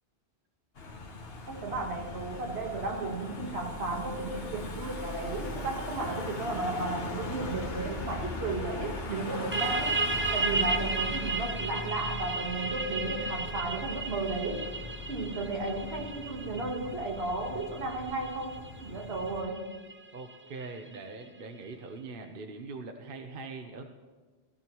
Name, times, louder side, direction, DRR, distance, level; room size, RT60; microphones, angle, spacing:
Car passing by / Engine, 0.8-19.4, left 2 dB, 70° left, 1.4 m, -40 dB
voice 1, 1.5-10.0 10.3-14.7 15.1-19.8, right 2 dB, 75° right, 2 dB, 1.8 m, -34 dB
sound 1, 9.5-20.9, right 3 dB, 20° right, 0.3 m, -34 dB
voice 2, 20.1-23.8, right 3 dB, 55° right, 4 dB, 1.0 m, -42 dB
16.0 x 14.5 x 3.0 m, 1.4 s
omnidirectional pair, 1.1 m